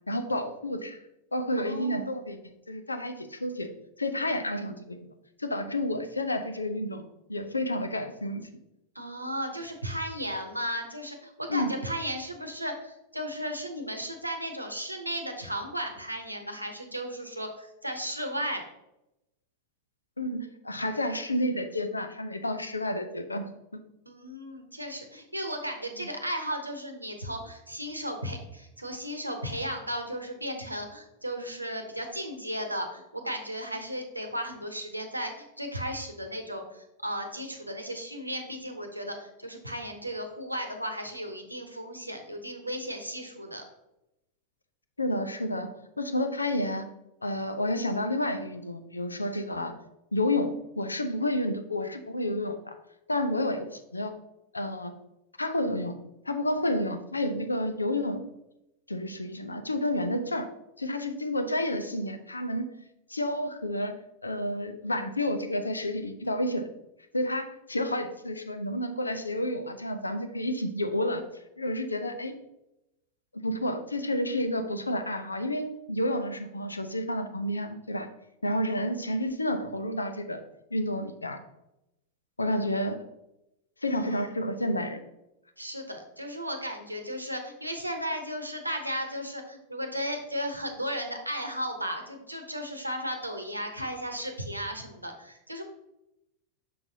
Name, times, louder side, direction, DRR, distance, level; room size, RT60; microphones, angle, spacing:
voice 1, 0.1-1.0 1.3-2.4 2.7-3.7 4.0-5.1 5.4-7.0 7.3-8.5 11.5-11.7 20.2-23.8 26.0-26.1 45.0-45.7 46.0-46.9 47.2-49.7 50.1-52.8 53.1-54.1 54.5-54.9 55.4-58.3 58.9-60.5 60.8-62.7 63.1-63.9 64.2-66.7 67.1-71.2 71.6-72.3 73.3-78.1 78.4-80.4 80.7-81.4 82.4-83.0 83.8-85.0, left 1 dB, 80° left, 8 dB, 0.6 m, -30 dB
voice 2, 1.6-2.1 8.9-18.6 24.1-43.6 83.9-84.2 85.6-95.6, equal, 85° right, 5 dB, 0.9 m, -35 dB
6.4 x 5.9 x 2.7 m, 0.88 s
figure-of-eight pair, 90°, 0 cm